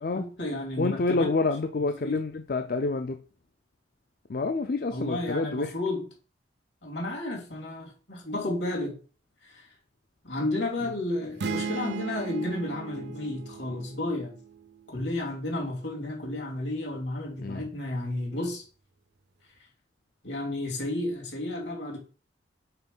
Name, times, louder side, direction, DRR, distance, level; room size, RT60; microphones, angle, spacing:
voice 1, 0.1-1.3 2.0-2.2 4.9-6.0 6.8-8.9 9.4-9.7 10.2-14.3 14.9-18.6 20.2-22.0, left 1 dB, 75° left, 3.0 m, -32 dB
voice 2, 0.8-3.2 4.3-5.7 10.8-10.9 17.4-17.7, left 3 dB, 50° left, 0.5 m, -28 dB
sound 1, 11.4-15.1, right 5 dB, 65° right, 0.6 m, -36 dB
5.7 x 5.0 x 5.4 m
head